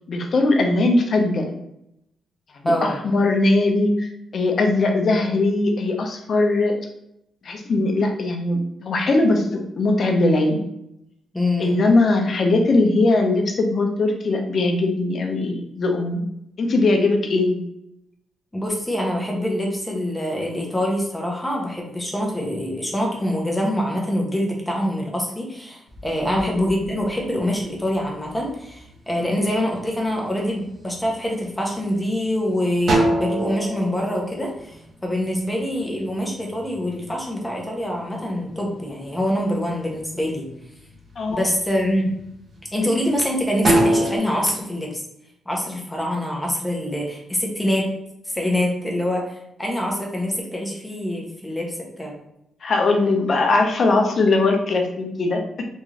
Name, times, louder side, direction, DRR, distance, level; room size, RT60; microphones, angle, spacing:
voice 1, 0.1-1.5 2.6-6.8 7.4-10.6 11.6-16.2 16.6-17.6 26.3-26.5 41.2-41.4 52.6-55.6, left 2 dB, 45° left, 3 dB, 0.6 m, -20 dB
voice 2, 2.6-3.0 11.3-11.7 18.5-40.5 41.3-42.1 42.7-45.0 45.5-47.9 48.3-52.1, left 1 dB, 5° left, -1 dB, 0.8 m, -25 dB
sound 1, 25.9-27.8 28.3-29.0 29.5-30.1 30.5-31.4 31.9-32.0 32.4-35.3 35.6-37.9 38.3-39.3 39.7-40.3 40.8-41.0 41.5-43.2 43.5-44.2, right 1 dB, 45° right, 1.1 m, -24 dB
3.5 x 2.6 x 3.1 m, 0.81 s
cardioid pair, 145°, 0 cm